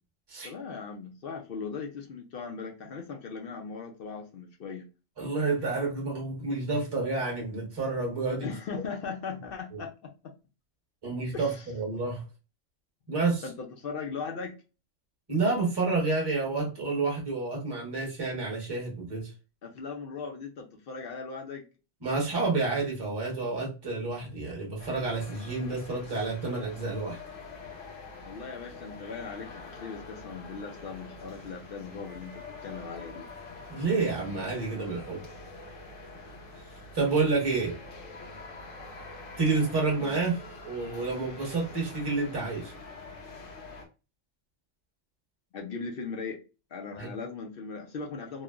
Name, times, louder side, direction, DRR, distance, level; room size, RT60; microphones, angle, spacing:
voice 1, 0.4-4.9 8.4-10.3 11.3-11.7 13.4-14.6 19.6-21.6 28.2-33.3 40.0-40.2 45.5-46.4 46.7-48.4, left 5 dB, 60° left, 0.6 m, -39 dB
voice 2, 5.2-8.5 9.7-9.8 11.0-12.2 13.1-13.4 15.3-19.3 22.0-27.2 33.7-35.3 36.9-37.8 39.4-40.4 40.6-42.7 47.0-47.1, right 3 dB, 20° right, 1.0 m, -29 dB
sound 1, 24.8-43.9, left 3 dB, 75° left, 1.1 m, -45 dB
3.1 x 2.1 x 2.3 m
omnidirectional pair, 1.3 m